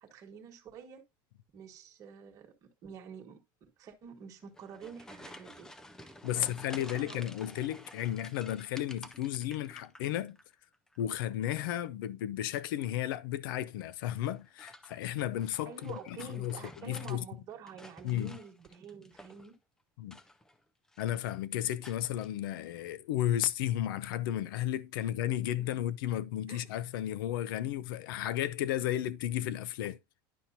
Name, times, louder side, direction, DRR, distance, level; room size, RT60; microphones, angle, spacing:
voice 1, 0.0-1.0 1.5-3.4 3.8-5.7 6.0-7.2 15.6-19.6 25.6-25.7 26.5-26.6, right 7 dB, 30° right, 1.4 m, -48 dB
sound 1, 4.4-10.4 10.7-11.3 12.7-13.1 14.1-17.2 17.5-19.5 20.0-20.6 20.9-21.3 21.8-22.3, left 1 dB, 5° left, 0.4 m, -52 dB
voice 2, 6.2-10.4 11.0-17.2 18.0-18.4 20.0-20.2 21.0-30.0, left 12 dB, 75° left, 0.6 m, -33 dB
10.5 x 5.8 x 2.7 m
supercardioid pair, 170°, 12 cm